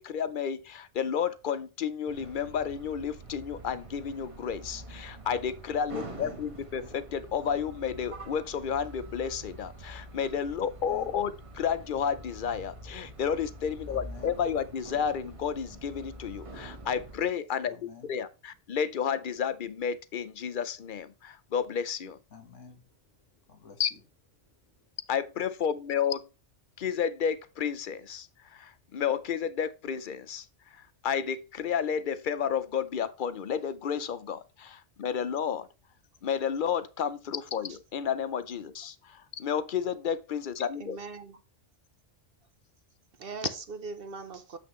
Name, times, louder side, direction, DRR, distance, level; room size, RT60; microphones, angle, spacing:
voice 1, 0.0-17.8 18.1-22.2 23.8-23.9 25.1-26.3 26.8-30.5 30.7-35.7 36.2-41.0, left 7 dB, 55° left, 0.7 m, -31 dB
sound 1, 2.1-17.2, right 2 dB, 30° right, 1.1 m, -46 dB
voice 2, 5.9-6.4 10.7-11.2 13.9-14.4 17.7-18.2 22.3-22.9 23.5-24.0, left 6 dB, 90° left, 1.8 m, -49 dB
voice 3, 40.8-41.4 43.2-44.6, right 4 dB, 55° right, 0.9 m, -39 dB
7.7 x 6.1 x 3.1 m
omnidirectional pair, 1.2 m